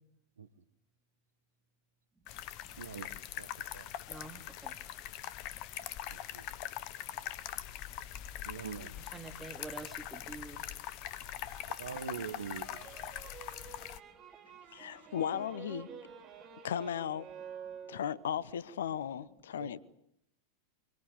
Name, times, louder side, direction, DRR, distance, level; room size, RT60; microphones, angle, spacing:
sound 1, 2.3-14.0, left 12 dB, 40° left, 1.2 m, -42 dB
voice 1, 2.8-3.1 3.4-3.5 3.7-3.9 6.1-6.5 8.4-9.0 11.8-12.9 19.6-19.7, right 6 dB, 70° right, 1.5 m, -43 dB
voice 2, 4.1-4.8 9.0-10.6 11.9-12.0, right 3 dB, 10° right, 2.6 m, -47 dB
sound 2, 11.2-18.4, right 7 dB, 35° right, 4.9 m, -50 dB
voice 3, 14.7-15.9 16.6-17.3 17.9-19.8, left 9 dB, 60° left, 1.0 m, -36 dB
25.0 x 24.5 x 8.3 m
figure-of-eight pair, 90°, 0 cm